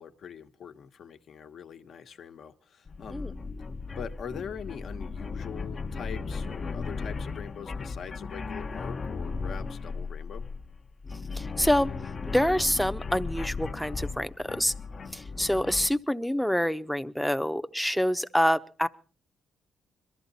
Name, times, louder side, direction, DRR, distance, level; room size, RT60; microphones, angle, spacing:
voice 1, 0.0-3.4 4.0-10.5 15.4-15.6, left 7 dB, 60° left, 1.3 m, -43 dB
sound 1, 2.9-15.9, left 4 dB, 40° left, 0.9 m, -36 dB
voice 2, 11.3-11.9 12.3-14.7 15.1-18.9, equal, ahead, 0.8 m, -26 dB
22.5 x 13.5 x 4.1 m
cardioid pair, 90°, 0 cm